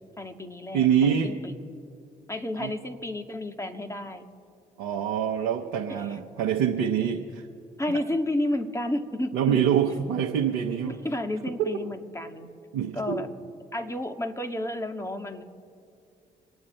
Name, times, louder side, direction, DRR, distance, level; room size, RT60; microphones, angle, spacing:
voice 1, 0.2-1.5 2.3-4.2 6.0-6.2 7.8-9.6 10.9-12.5 12.9-13.3 13.7-15.4, left 1 dB, 15° left, 5 dB, 2.0 m, -31 dB
voice 2, 0.7-1.3 2.6-2.7 4.8-7.5 9.3-10.9 12.7-13.2, right 8 dB, 80° right, 1 dB, 1.1 m, -25 dB
27.5 x 9.5 x 4.4 m, 2.4 s
hypercardioid pair, 45°, 19 cm